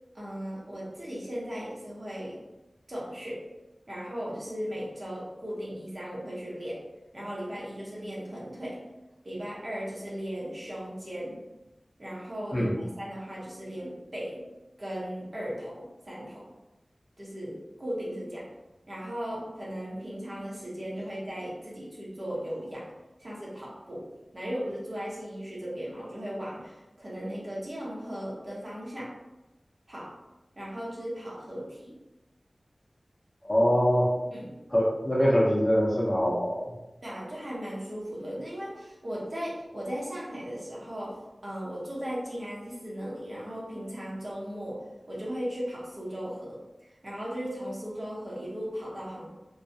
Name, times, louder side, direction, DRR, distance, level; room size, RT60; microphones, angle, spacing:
voice 1, 0.1-2.4 2.9-3.4 3.9-6.8 7.1-8.8 9.2-11.4 12.0-14.4 14.8-16.4 17.2-18.4 18.9-22.9 23.2-24.0 24.3-29.1 29.9-30.1 30.6-32.0 34.3-34.6 37.0-46.6 47.0-49.3, equal, 50° right, -6 dB, 0.9 m, -37 dB
voice 2, 12.5-12.8 33.4-34.1 34.7-36.7, equal, 25° left, -4 dB, 0.6 m, -24 dB
2.3 x 2.0 x 2.7 m, 1.0 s
wide cardioid pair, 60°, 0 cm